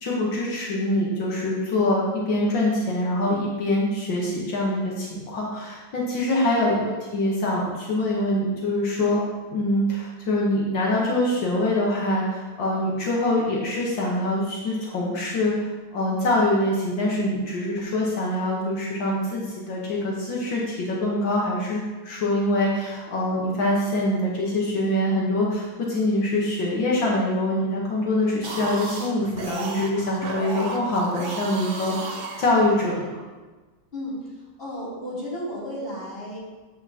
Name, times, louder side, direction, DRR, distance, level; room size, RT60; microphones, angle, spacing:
voice 1, 0.0-9.2 9.5-31.9 32.4-33.1, left 1 dB, 80° left, -4 dB, 2.0 m, -24 dB
sound 1, 28.3-33.0, right 3 dB, 50° right, 0.7 m, -34 dB
voice 2, 33.9-36.4, equal, 30° left, -8 dB, 3.4 m, -33 dB
9.7 x 8.3 x 2.9 m, 1.3 s
omnidirectional pair, 2.0 m